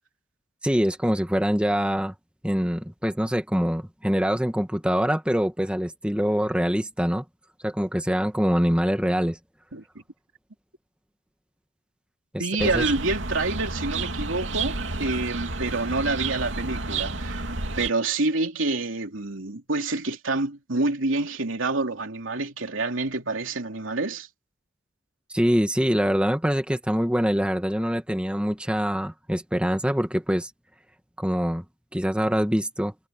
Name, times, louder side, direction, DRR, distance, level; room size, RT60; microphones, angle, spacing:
voice 1, 0.6-2.1 2.4-7.2 7.6-9.4 12.3-12.8 25.3-30.5 31.2-31.6 31.9-32.9, equal, 5° right, 1.5 m, -24 dB
voice 2, 12.4-17.5 17.8-24.3, right 2 dB, 90° right, 3.1 m, -27 dB
sound 1, 12.6-17.9, right 3 dB, 75° right, 2.9 m, -30 dB
head